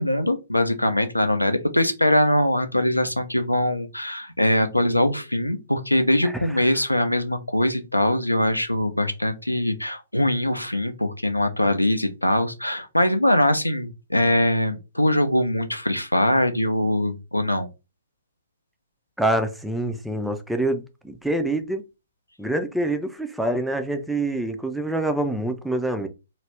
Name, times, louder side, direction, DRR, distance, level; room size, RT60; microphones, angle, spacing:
voice 1, 0.0-17.7, left 1 dB, 90° left, 0.5 m, -22 dB
voice 2, 19.2-21.9 22.4-26.1, right 1 dB, ahead, 0.3 m, -26 dB
2.3 x 2.0 x 3.3 m
figure-of-eight pair, 120°, 0 cm